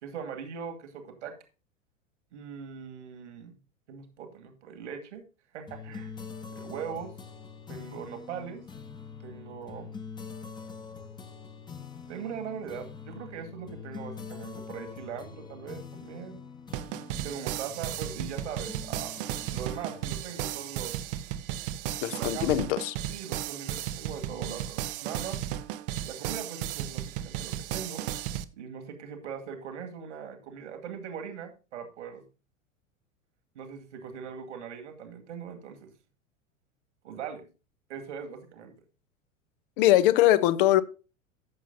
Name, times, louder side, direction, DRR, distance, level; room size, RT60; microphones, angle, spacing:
voice 1, 0.0-1.3 2.3-3.6 3.9-5.2 5.5-6.2 6.5-7.1 7.7-8.6 9.2-10.0 12.1-16.4 17.2-19.1 19.5-20.9 22.1-22.7 23.1-25.4 26.1-28.0 28.5-32.3 33.6-35.9 37.0-37.5 37.9-38.7, right 7 dB, 60° right, 2.2 m, -40 dB
sound 1, 5.7-21.5, left 5 dB, 10° left, 1.1 m, -45 dB
sound 2, 16.7-28.4, right 12 dB, 45° right, 0.7 m, -35 dB
voice 2, 22.0-23.0 39.8-40.8, left 14 dB, 45° left, 0.8 m, -22 dB
14.0 x 7.1 x 2.7 m
figure-of-eight pair, 90°, 40 cm